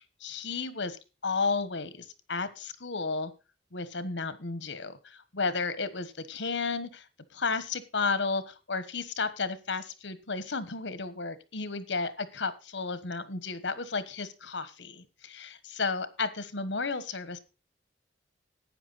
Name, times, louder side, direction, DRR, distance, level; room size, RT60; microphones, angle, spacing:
voice 1, 0.0-3.3 3.7-7.0 7.3-17.4, left 4 dB, 80° left, 13 dB, 1.3 m, -33 dB
12.0 x 8.9 x 4.1 m, 0.30 s
head